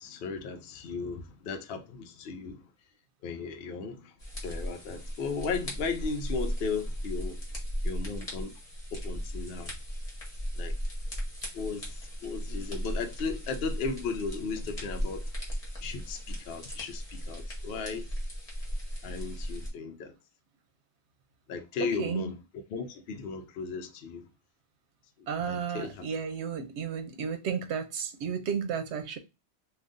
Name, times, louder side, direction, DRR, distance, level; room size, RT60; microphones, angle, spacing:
voice 1, 0.0-2.6 3.2-4.1 4.4-7.4 7.8-8.5 8.9-9.7 10.6-10.7 11.5-15.3 15.8-18.1 19.0-20.1 21.5-22.3 22.7-24.3 25.2-26.0, left 5 dB, 70° left, 0.7 m, -36 dB
sound 1, 4.2-19.7, equal, 35° left, 1.1 m, -36 dB
voice 2, 21.8-22.3 25.3-29.2, right 7 dB, 80° right, 0.9 m, -33 dB
2.6 x 2.4 x 3.5 m
omnidirectional pair, 1.1 m